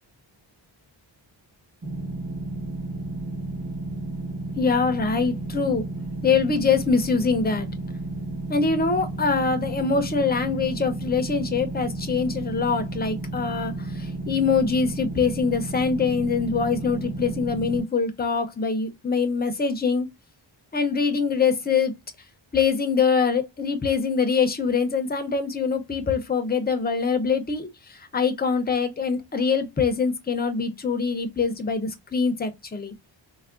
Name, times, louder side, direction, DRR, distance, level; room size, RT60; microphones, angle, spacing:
sound 1, 1.8-17.8, right 2 dB, 30° right, 0.8 m, -32 dB
voice 1, 4.6-5.8 6.2-7.7 8.5-20.1 20.7-21.9 22.5-32.9, left 5 dB, 20° left, 0.4 m, -24 dB
3.4 x 2.1 x 2.3 m
wide cardioid pair, 160°, 47 cm